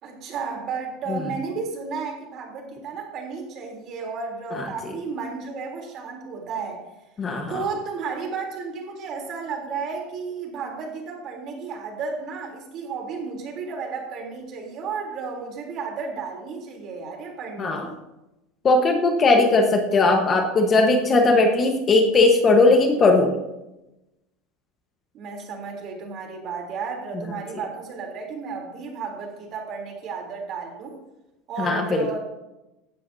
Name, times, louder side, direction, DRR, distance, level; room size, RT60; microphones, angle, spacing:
voice 1, 0.0-6.8 7.5-18.0 25.1-31.0 31.5-32.2, right 5 dB, 40° right, 1 dB, 3.5 m, -33 dB
voice 2, 7.2-7.6 17.6-17.9 18.6-23.3 27.1-27.2 31.6-32.2, left 3 dB, 25° left, 3 dB, 1.3 m, -18 dB
17.0 x 12.0 x 2.8 m, 0.96 s
supercardioid pair, 155°, 0 cm